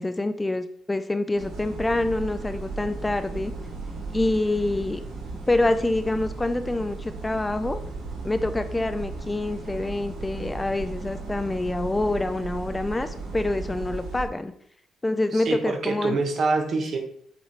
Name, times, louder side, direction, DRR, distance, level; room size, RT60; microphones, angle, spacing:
voice 1, 0.0-3.5 4.1-5.0 5.5-7.8 8.2-14.5 15.0-16.2, left 2 dB, 15° left, 10 dB, 0.4 m, -26 dB
sound 1, 1.3-14.3, right 3 dB, 90° right, 1.9 m, -36 dB
voice 2, 15.3-17.0, right 3 dB, 60° right, 4 dB, 1.2 m, -25 dB
8.1 x 3.1 x 4.1 m, 0.65 s
cardioid pair, 90°, 0 cm